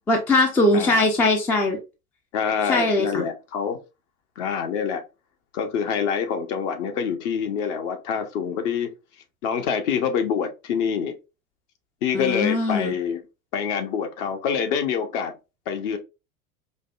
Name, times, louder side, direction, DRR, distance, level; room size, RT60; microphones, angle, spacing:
voice 1, 0.1-1.8 2.7-3.3 12.1-12.9, left 2 dB, 5° left, 0.3 m, -21 dB
voice 2, 0.7-1.1 2.3-3.8 4.4-5.0 5.5-8.9 9.4-11.2 12.0-13.2 13.5-15.3 15.7-16.0, left 7 dB, 55° left, 1.0 m, -26 dB
5.0 x 2.1 x 2.4 m
hypercardioid pair, 90°, 44 cm